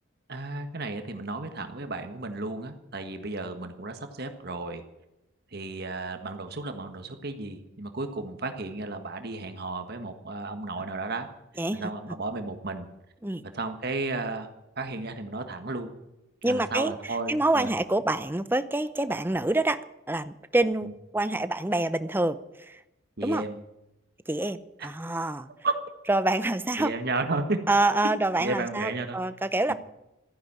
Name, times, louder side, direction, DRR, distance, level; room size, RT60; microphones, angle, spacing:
voice 1, 0.3-4.8 5.5-11.3 11.8-12.9 13.5-14.5 14.8-15.9 16.5-17.7 23.2-23.6 24.8-24.9 25.6-25.7 26.8-27.6 28.4-29.2 29.7-29.8, right 3 dB, 50° right, 6 dB, 1.5 m, -33 dB
voice 2, 11.6-11.9 13.2-13.4 16.4-19.8 20.1-22.8 23.2-23.4 24.3-25.5 26.1-26.9 27.7-29.7, right 2 dB, 10° right, 13 dB, 0.6 m, -27 dB
14.5 x 10.5 x 8.8 m, 0.92 s
head